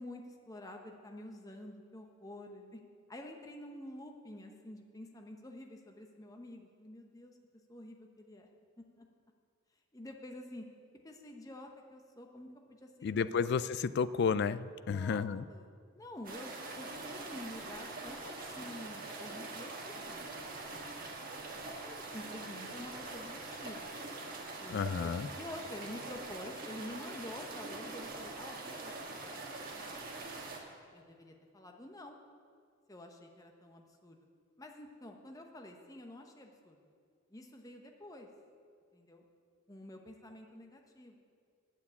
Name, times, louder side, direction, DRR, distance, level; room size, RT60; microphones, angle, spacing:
voice 1, 0.0-2.8 3.1-7.4 7.7-8.5 9.0-9.1 9.9-10.7 11.0-13.5 14.8-16.5 16.8-20.5 20.7-21.3 21.8-24.0 24.6-29.4 30.9-32.2 32.9-34.2 34.6-36.8 37.3-38.3 38.9-39.2 39.7-41.2, left 1 dB, 15° left, 2 dB, 0.9 m, -49 dB
voice 2, 13.0-15.4 24.7-25.3, left 6 dB, 55° left, 16 dB, 0.3 m, -32 dB
sound 1, 16.2-30.6, right 3 dB, 45° right, 1.5 m, -44 dB
9.5 x 7.3 x 8.3 m, 2.1 s
head